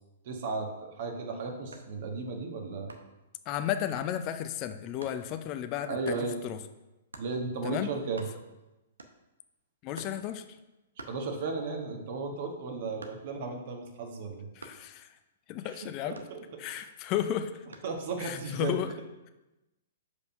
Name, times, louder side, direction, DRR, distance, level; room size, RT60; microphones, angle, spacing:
voice 1, 0.2-2.9 5.9-6.4 7.2-8.2 11.1-14.5 16.0-16.4 16.7-16.8 17.8-18.8, right 3 dB, 55° right, 2 dB, 1.4 m, -35 dB
sound 1, 1.7-2.0 2.9-3.2 4.0-4.2 5.0-5.2 6.0-6.3 7.1-7.4 7.8-7.9 8.0-8.6 9.0-9.4 9.9-10.3 11.0-11.7 12.1-13.5 14.6-14.9 16.1-16.8 17.7-18.0, right 3 dB, 90° right, 0.8 m, -48 dB
voice 2, 3.5-6.6 7.6-7.9 9.8-10.4 14.5-15.1 15.5-16.2 16.6-17.7 18.2-18.9, left 10 dB, 35° left, 9 dB, 0.5 m, -33 dB
5.4 x 5.0 x 5.2 m, 1.0 s
hypercardioid pair, 120°, 0 cm